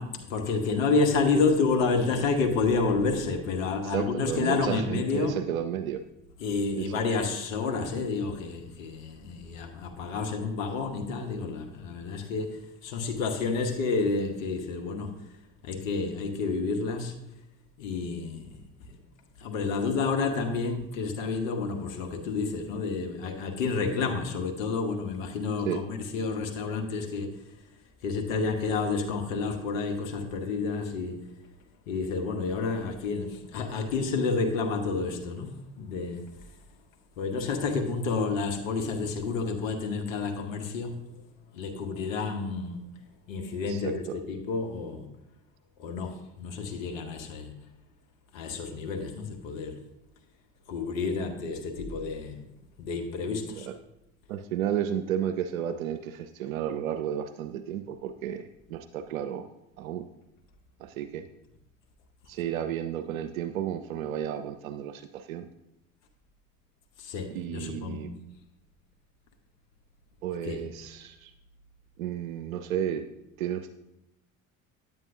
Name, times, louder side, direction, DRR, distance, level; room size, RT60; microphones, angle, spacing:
voice 1, 0.0-5.4 6.4-15.1 15.6-17.1 17.8-18.6 18.9-19.0 19.4-27.3 28.0-31.2 31.9-36.2 37.2-40.9 41.5-42.8 43.3-45.1 45.8-47.5 48.3-49.7 50.7-52.4 52.8-53.7 67.0-68.1 70.4-70.6, left 4 dB, 75° left, 3 dB, 1.2 m, -29 dB
voice 2, 3.8-6.0 6.8-6.9 25.6-25.8 43.7-44.2 53.6-53.8 54.3-59.5 59.8-60.1 60.8-61.2 62.3-65.5 67.3-68.1 70.2-71.3 72.0-73.1 73.4-73.7, right 9 dB, 80° right, 9 dB, 0.5 m, -32 dB
9.3 x 8.7 x 2.7 m, 0.85 s
hypercardioid pair, 70°, 41 cm